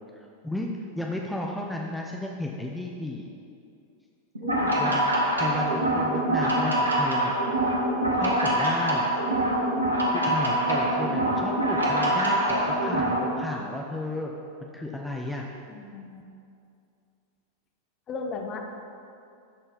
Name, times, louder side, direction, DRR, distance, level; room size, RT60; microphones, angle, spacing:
voice 1, 0.2-0.7 0.9-3.3 4.8-5.1 5.4-7.4 8.2-9.1 10.1-14.3 14.6-15.5, left 1 dB, 5° left, -1 dB, 0.7 m, -33 dB
sound 1, 4.3-13.2, right 1 dB, 80° right, 1.4 m, -24 dB
voice 2, 4.4-5.1 15.7-16.2 18.1-18.6, left 4 dB, 30° left, 3 dB, 1.0 m, -37 dB
12.5 x 4.4 x 5.2 m, 2.5 s
figure-of-eight pair, 90°, 0 cm